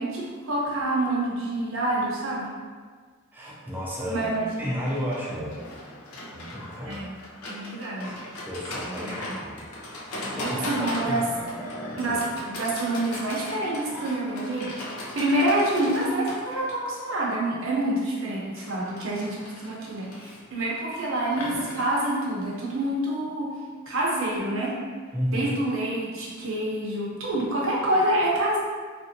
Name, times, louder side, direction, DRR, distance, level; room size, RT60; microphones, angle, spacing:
voice 1, 0.0-2.5 4.1-4.7 6.8-7.1 7.5-8.1 8.8-9.4 10.3-11.2 12.0-23.5 23.9-24.8 25.3-28.6, right 1 dB, 65° right, -5 dB, 0.7 m, -27 dB
voice 2, 3.3-4.3 4.6-5.5 6.3-7.0 8.5-11.2 12.1-12.2 25.1-25.6, equal, 10° right, -6 dB, 0.5 m, -33 dB
Livestock farm animals working animals, 4.9-22.9, left 1 dB, 90° left, 0.6 m, -38 dB
2.9 x 2.6 x 2.6 m, 1.5 s
head